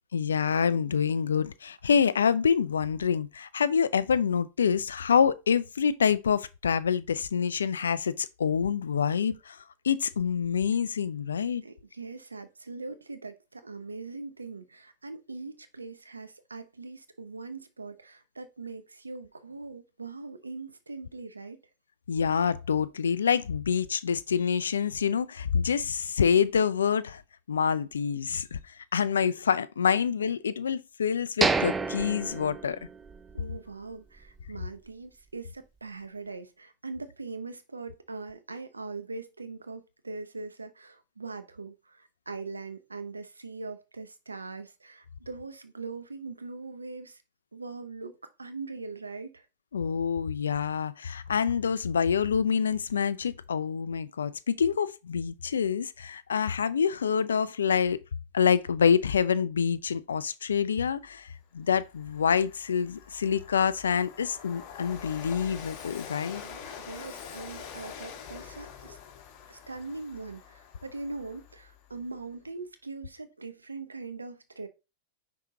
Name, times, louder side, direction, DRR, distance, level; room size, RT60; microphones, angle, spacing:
voice 1, 0.1-9.6 9.8-11.6 22.1-27.2 27.5-28.6 28.9-32.8 49.7-58.0 58.3-61.3 61.5-66.4, left 7 dB, 80° left, 0.5 m, -26 dB
voice 2, 11.6-21.6 33.3-47.2 47.5-49.4 66.4-69.0 69.5-74.7, right 3 dB, 90° right, 0.9 m, -41 dB
sound 1, 31.4-33.3 33.7-33.8 34.3-34.5, right 4 dB, 15° right, 0.6 m, -29 dB
Train, 61.1-61.2 61.6-72.0, left 7 dB, 50° left, 1.5 m, -45 dB
5.7 x 4.7 x 3.7 m
figure-of-eight pair, 95°, 0 cm